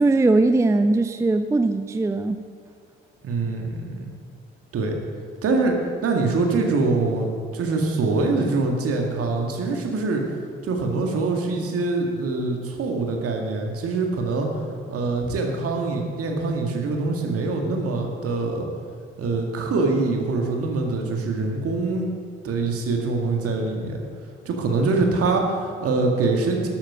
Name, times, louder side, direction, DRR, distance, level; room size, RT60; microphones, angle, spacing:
voice 1, 0.0-2.4, right 2 dB, 10° right, 9 dB, 0.5 m, -20 dB
voice 2, 3.2-4.1 4.7-4.9 5.4-5.8 6.0-10.2 10.6-14.5 14.9-18.7 19.2-22.1 22.4-24.0 24.5-26.7, right 3 dB, 50° right, 2 dB, 2.0 m, -24 dB
12.5 x 8.8 x 5.9 m, 2.2 s
figure-of-eight pair, 45°, 29 cm